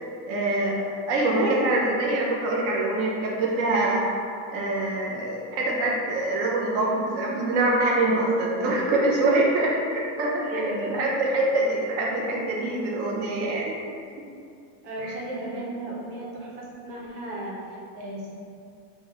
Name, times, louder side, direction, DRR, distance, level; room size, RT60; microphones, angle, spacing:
voice 1, 0.3-0.8 1.1-4.0 4.5-13.7 15.0-15.2, right 2 dB, 45° right, -3 dB, 0.4 m, -24 dB
voice 2, 10.4-11.0 14.8-18.3, right 1 dB, 80° right, -4 dB, 1.0 m, -35 dB
2.9 x 2.1 x 3.4 m, 2.5 s
supercardioid pair, 150°, 46 cm